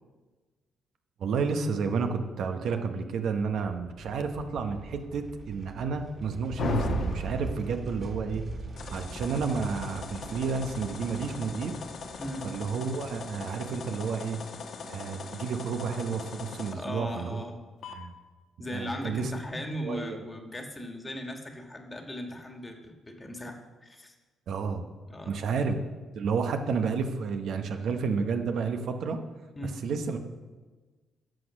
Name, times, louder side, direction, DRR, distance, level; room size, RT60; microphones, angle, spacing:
voice 1, 1.2-8.4 8.9-11.7 12.4-14.4 14.8-17.4 17.9-18.1 18.7-19.3 19.8-20.2 24.5-24.9 25.3-25.8 26.2-29.2 29.8-30.2, right 5 dB, 70° right, 6 dB, 0.9 m, -31 dB
sound 1, 3.8-14.1, right 3 dB, 35° right, 2.8 m, -40 dB
sound 2, 6.6-7.7 8.8-16.7 17.8-17.9, left 4 dB, 65° left, 1.2 m, -38 dB
voice 2, 16.7-17.6 18.6-24.1 25.1-25.4 29.5-29.7, left 1 dB, 20° left, 3 dB, 1.6 m, -38 dB
11.0 x 6.4 x 6.2 m, 1.3 s
cardioid pair, 90°, 0 cm